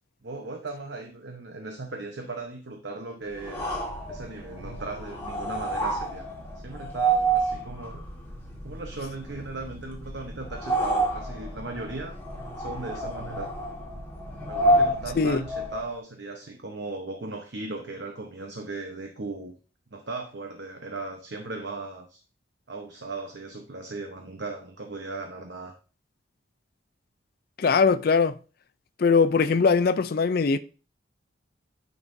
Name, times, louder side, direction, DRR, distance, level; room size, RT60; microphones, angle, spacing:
voice 1, 0.2-3.8 4.1-6.2 6.5-8.1 8.6-12.2 12.6-13.5 14.4-19.5 19.9-22.2 22.7-25.7, right 3 dB, 60° right, 0.9 m, -37 dB
sound 1, 3.4-15.9, right 2 dB, 10° left, 1.5 m, -29 dB
voice 2, 27.6-28.3 29.0-30.6, left 5 dB, 50° left, 0.4 m, -21 dB
9.5 x 5.5 x 2.6 m
head